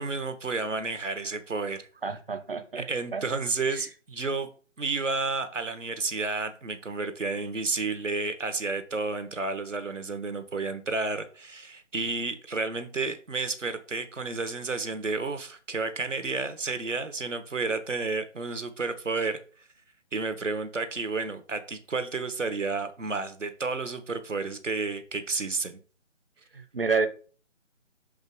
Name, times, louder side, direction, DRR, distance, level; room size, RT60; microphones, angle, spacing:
voice 1, 0.0-1.9 2.8-4.5 4.8-19.4 20.1-25.8, right 3 dB, 70° right, 1.3 m, -31 dB
voice 2, 2.0-3.2 3.7-3.8 26.5-27.1, right 4 dB, 45° right, 1.0 m, -29 dB
6.1 x 5.2 x 3.6 m
figure-of-eight pair, 155°, 38 cm